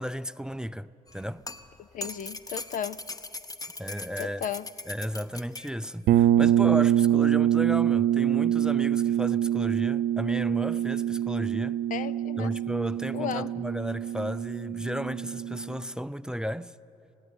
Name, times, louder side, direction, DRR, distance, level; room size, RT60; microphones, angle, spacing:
voice 1, 0.0-1.4 3.8-4.4 4.9-11.8 12.4-16.7, equal, 5° right, 0.4 m, -34 dB
sound 1, 1.1-5.9 7.0-7.1, left 2 dB, 25° left, 1.0 m, -40 dB
voice 2, 1.8-3.0 4.2-4.7 11.9-12.6 13.1-13.5, left 10 dB, 60° left, 0.5 m, -34 dB
sound 2, 6.1-15.7, right 11 dB, 75° right, 0.6 m, -25 dB
18.5 x 16.0 x 9.8 m
supercardioid pair, 55°, 15 cm